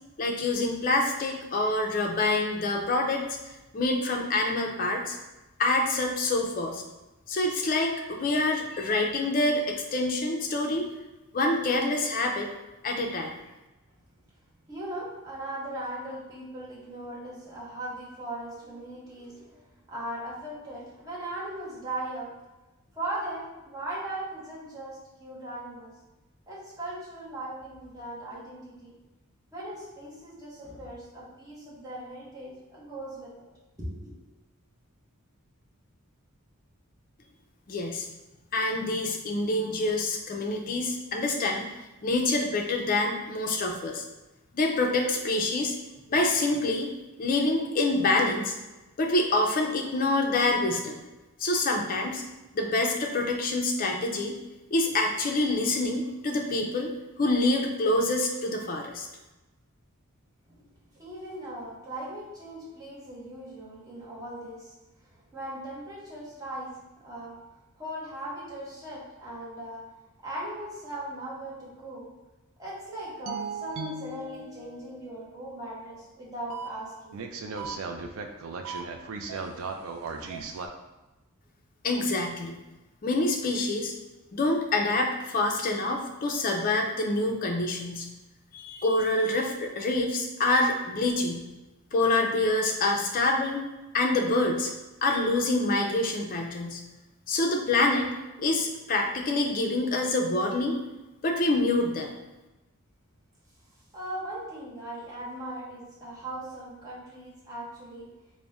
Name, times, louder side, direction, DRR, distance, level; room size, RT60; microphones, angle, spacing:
voice 1, 0.2-3.3 3.7-5.2 5.6-6.8 7.3-10.9 11.3-12.5 12.8-13.3 37.7-38.1 38.5-41.7 42.0-44.0 44.5-45.8 46.1-46.9 47.2-48.6 49.0-51.0 51.4-52.2 52.5-54.3 54.7-56.9 57.2-59.1 81.8-82.6 83.0-83.9 84.3-88.1 88.5-91.4 91.9-93.7 93.9-94.7 95.0-96.8 97.3-98.1 98.4-100.8 101.2-102.1, left 2 dB, 40° left, 2 dB, 0.4 m, -26 dB
voice 2, 14.7-22.3 22.9-26.0 26.5-29.0 29.5-33.5 33.8-34.3 60.5-60.6 60.9-64.7 65.0-67.4 67.7-69.9 70.2-72.1 72.6-77.3 77.9-78.1 103.9-108.1, right 1 dB, 15° right, -7 dB, 1.0 m, -39 dB
sound 1, 73.3-75.2 76.5-76.7 77.1-80.7, right 4 dB, 65° right, 0.3 m, -36 dB
3.9 x 2.1 x 3.5 m, 1.1 s
head